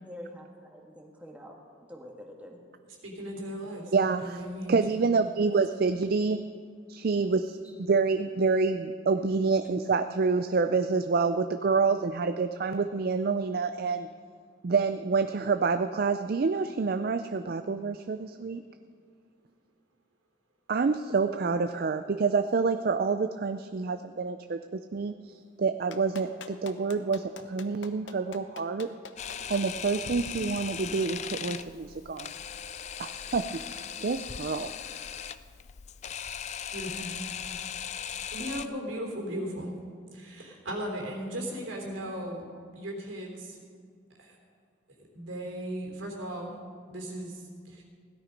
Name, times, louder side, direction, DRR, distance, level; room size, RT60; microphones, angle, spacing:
voice 1, 0.0-1.5 1.9-2.6 7.6-7.7, equal, 5° right, 0 dB, 1.5 m, -46 dB
voice 2, 3.0-3.9 4.2-4.7 5.5-5.8 36.7-37.1 38.3-39.7 40.1-42.5 42.7-43.6 44.2-44.4 45.1-46.5 46.9-47.8, equal, 80° right, 1 dB, 3.3 m, -37 dB
voice 3, 3.9-4.4 4.7-6.4 6.9-14.1 14.6-18.6 20.7-28.9 29.5-32.3 33.0-33.5 34.0-34.7, right 4 dB, 50° right, 9 dB, 0.4 m, -27 dB
Clapping, 25.9-29.6 31.2-31.3, left 5 dB, 70° left, 0.8 m, -44 dB
Camera, 29.2-38.7, left 8 dB, 35° left, 0.4 m, -38 dB
sound 1, 29.3-31.7, equal, 10° left, 1.6 m, -54 dB
17.0 x 12.0 x 5.2 m, 2.2 s
head